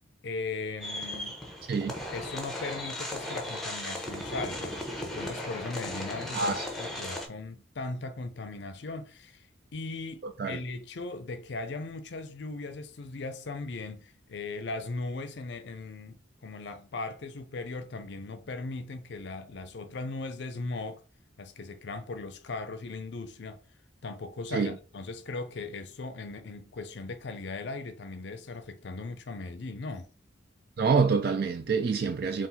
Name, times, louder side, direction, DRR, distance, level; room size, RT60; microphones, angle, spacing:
voice 1, 0.2-1.4 2.1-9.5 9.7-21.0 21.4-23.6 24.0-30.1, left 3 dB, 65° left, 0.5 m, -38 dB
sound 1, 0.8-7.3, left 1 dB, ahead, 0.7 m, -36 dB
voice 2, 6.3-6.7 10.2-10.6 24.5-24.7 30.8-32.5, right 5 dB, 50° right, 0.3 m, -27 dB
3.8 x 2.5 x 4.2 m
head